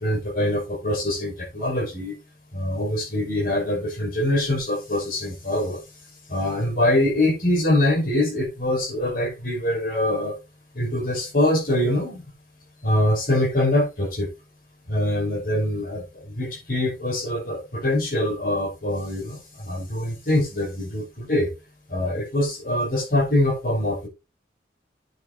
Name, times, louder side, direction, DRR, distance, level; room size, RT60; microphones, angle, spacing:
voice 1, 0.0-2.1 2.5-5.8 6.3-10.4 10.7-12.2 12.8-14.3 14.9-21.5 21.9-24.1, left 1 dB, 50° left, 5.7 m, -24 dB
9.0 x 6.5 x 4.2 m
head